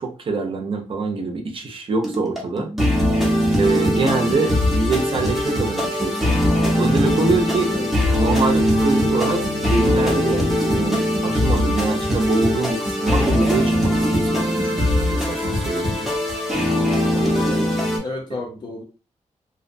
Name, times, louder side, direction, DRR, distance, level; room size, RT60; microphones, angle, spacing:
voice 1, 0.0-2.7 3.5-6.4 6.8-7.7 8.2-16.1, right 3 dB, 45° right, 3 dB, 0.5 m, -25 dB
sound 1, 2.0-18.0, left 1 dB, ahead, 0.6 m, -20 dB
voice 2, 17.1-17.7 18.0-18.8, left 2 dB, 35° left, 0 dB, 0.6 m, -32 dB
2.6 x 2.1 x 2.5 m, 0.32 s
wide cardioid pair, 180°, 12 cm